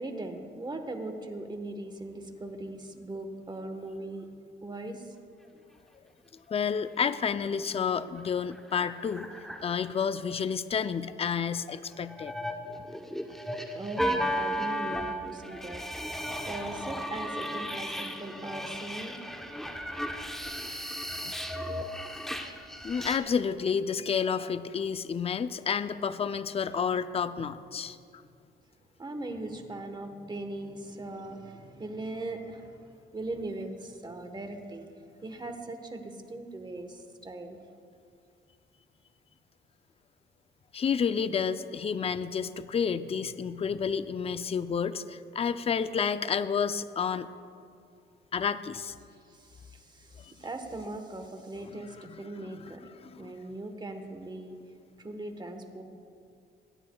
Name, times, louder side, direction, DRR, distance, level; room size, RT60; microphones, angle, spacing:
voice 1, 0.0-4.3 4.6-5.2 13.7-19.2 27.4-27.5 29.0-34.9 35.2-37.6 49.3-52.8 53.2-54.6 55.0-55.8, right 2 dB, 20° right, 6 dB, 1.2 m, -40 dB
voice 2, 6.5-9.3 9.6-12.3 21.2-21.4 22.8-28.0 40.7-47.3 48.3-48.9 50.2-50.3 52.0-52.7 53.0-53.3, left 6 dB, 30° left, 12 dB, 0.5 m, -30 dB
sound 1, 7.0-7.5 7.7-7.8 8.1-9.9 11.9-23.2, equal, ahead, 0.9 m, -35 dB
22.5 x 10.0 x 2.3 m, 2.4 s
cardioid pair, 90°, 20 cm